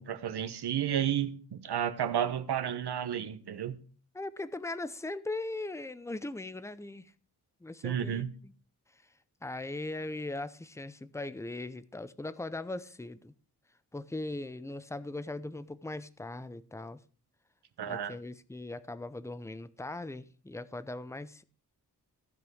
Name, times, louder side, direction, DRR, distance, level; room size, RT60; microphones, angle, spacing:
voice 1, 0.0-3.8 7.8-8.3 17.8-18.1, right 9 dB, 90° right, 1.1 m, -32 dB
voice 2, 4.1-7.1 7.6-8.5 9.4-13.3 13.9-17.0 17.8-21.4, left 2 dB, 10° left, 0.6 m, -39 dB
15.0 x 5.3 x 6.2 m
wide cardioid pair, 125°, 38 cm